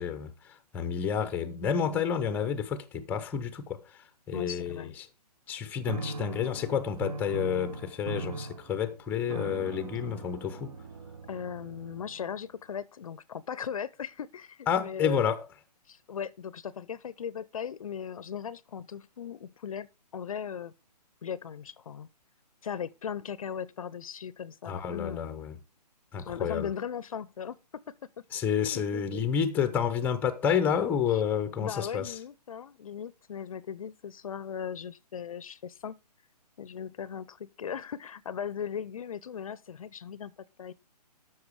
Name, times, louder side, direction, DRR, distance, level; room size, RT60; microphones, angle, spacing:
voice 1, 0.0-3.8 4.3-4.9 5.5-10.7 14.7-15.4 24.7-25.6 26.1-26.7 28.3-32.1, left 8 dB, 5° left, 0.7 m, -30 dB
voice 2, 4.3-4.9 11.3-15.3 15.9-20.7 21.2-22.1 22.6-25.3 26.2-27.6 28.5-29.3 31.5-35.9 36.6-40.3 40.6-40.7, left 8 dB, 55° left, 0.6 m, -38 dB
sound 1, 5.9-12.3, right 3 dB, 55° right, 1.5 m, -40 dB
13.0 x 6.0 x 4.8 m
figure-of-eight pair, 140°, 21 cm